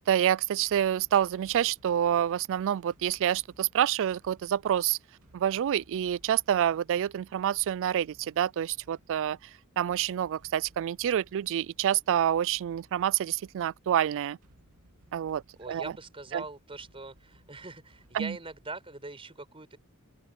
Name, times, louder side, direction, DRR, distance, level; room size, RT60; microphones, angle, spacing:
voice 1, 0.0-5.0 5.3-9.4 9.8-14.4 15.1-15.8 16.3-16.4 18.1-18.4, right 10 dB, 60° right, 0.3 m, -27 dB
sound 1, 0.6-19.0, right 1 dB, 85° right, 2.7 m, -63 dB
voice 2, 15.6-19.8, right 3 dB, 25° right, 4.7 m, -42 dB
open air
head